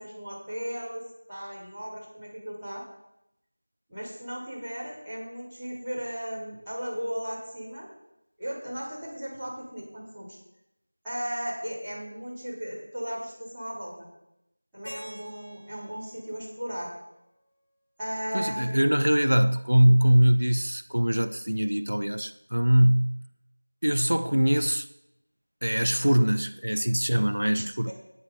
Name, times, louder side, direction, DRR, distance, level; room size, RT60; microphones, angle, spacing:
voice 1, 0.0-2.8 3.9-7.9 8.4-10.4 11.0-14.1 14.7-16.9 18.0-18.8 27.9-28.0, equal, 5° right, 3.9 m, -36 dB
Keyboard (musical), 14.8-17.8, equal, 25° left, 5.3 m, -49 dB
voice 2, 18.3-23.3 23.8-24.9 25.6-27.9, equal, 75° right, 0.6 m, -22 dB
11.5 x 9.6 x 5.7 m
figure-of-eight pair, 175°, 0 cm